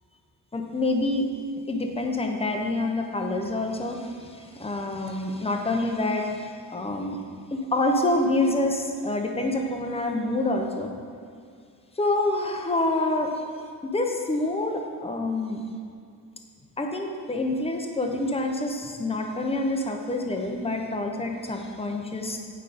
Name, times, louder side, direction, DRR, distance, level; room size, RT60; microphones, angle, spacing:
voice 1, 0.5-1.2 1.7-4.0 4.6-6.3 6.7-7.2 7.5-10.9 12.0-13.3 13.9-15.6 16.8-22.4, left 2 dB, 15° left, 2 dB, 0.7 m, -27 dB
9.2 x 5.4 x 5.0 m, 2.2 s
wide cardioid pair, 175°, 35 cm